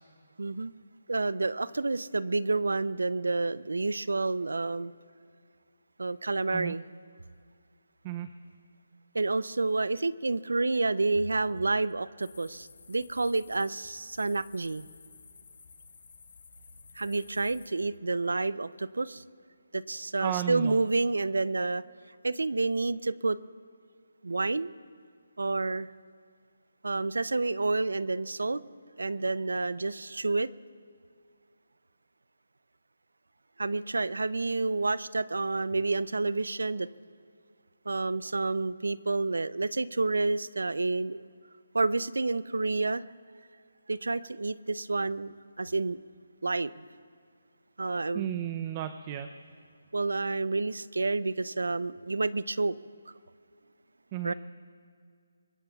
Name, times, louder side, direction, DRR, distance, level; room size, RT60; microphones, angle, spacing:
voice 1, 0.4-0.7 1.1-4.9 6.0-6.8 9.1-14.9 17.0-19.2 19.7-21.8 22.2-23.4 24.2-24.7 25.4-25.9 26.8-28.6 29.0-30.5 33.6-36.9 37.9-41.3 41.7-43.0 43.9-46.0 46.4-46.8 47.8-48.3 49.9-52.8 54.2-54.3, right 3 dB, 85° right, 18 dB, 0.5 m, -29 dB
sound 1, 12.2-17.7, left 5 dB, 60° left, 1.4 m, -54 dB
voice 2, 20.2-20.8 48.1-49.3 54.1-54.3, right 12 dB, 25° right, 10 dB, 0.5 m, -33 dB
25.0 x 21.0 x 2.4 m, 2.2 s
figure-of-eight pair, 155°, 0 cm